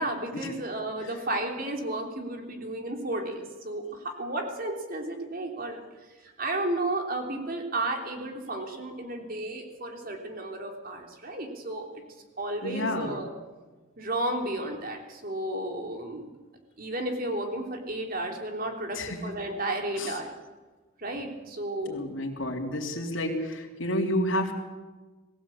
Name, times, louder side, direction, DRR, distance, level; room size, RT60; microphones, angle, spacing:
voice 1, 0.0-5.8 6.2-12.0 12.4-13.3 14.0-16.3 16.8-20.3 21.0-22.1, right 1 dB, 45° right, 3 dB, 3.4 m, -33 dB
voice 2, 12.6-13.2 18.9-19.2 20.0-20.2 21.8-24.5, left 1 dB, 80° left, -1 dB, 3.4 m, -30 dB
21.0 x 15.5 x 8.6 m, 1.3 s
head